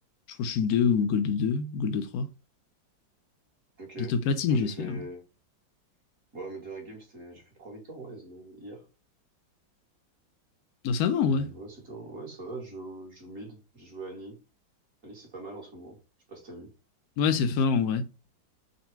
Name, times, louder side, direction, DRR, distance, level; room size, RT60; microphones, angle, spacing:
voice 1, 0.4-2.3 4.1-5.0 10.8-11.5 17.2-18.1, left 6 dB, 70° left, 0.9 m, -25 dB
voice 2, 3.8-4.2 4.5-5.2 6.3-8.9 11.2-14.4 15.0-16.0 16.3-16.7, right 2 dB, 45° right, 1.5 m, -42 dB
4.0 x 2.2 x 4.4 m
omnidirectional pair, 2.1 m